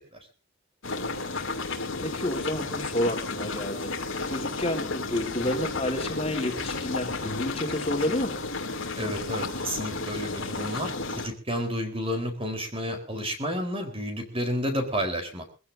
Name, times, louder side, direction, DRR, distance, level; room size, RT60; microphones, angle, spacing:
sound 1, 0.8-11.3, left 3 dB, 60° left, 2.9 m, -33 dB
voice 1, 2.0-3.9 4.3-8.4, left 1 dB, 25° left, 2 dB, 3.5 m, -30 dB
voice 2, 9.0-15.5, equal, 25° right, 5 dB, 4.1 m, -31 dB
24.0 x 15.5 x 2.7 m, 0.33 s
head